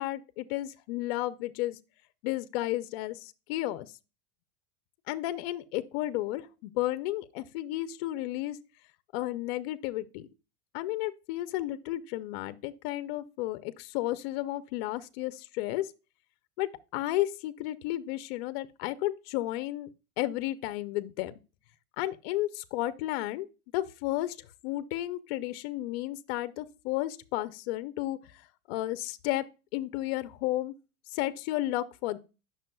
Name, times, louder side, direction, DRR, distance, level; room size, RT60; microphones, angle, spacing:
voice 1, 0.0-1.8 2.2-3.9 5.1-8.6 9.1-10.3 10.7-15.9 16.6-19.9 20.2-21.3 22.0-23.5 23.7-24.4 24.6-28.3 28.7-29.4 29.7-30.7 31.1-32.2, left 16 dB, 45° left, 0.5 m, -32 dB
9.0 x 6.2 x 2.2 m
supercardioid pair, 155°, 44 cm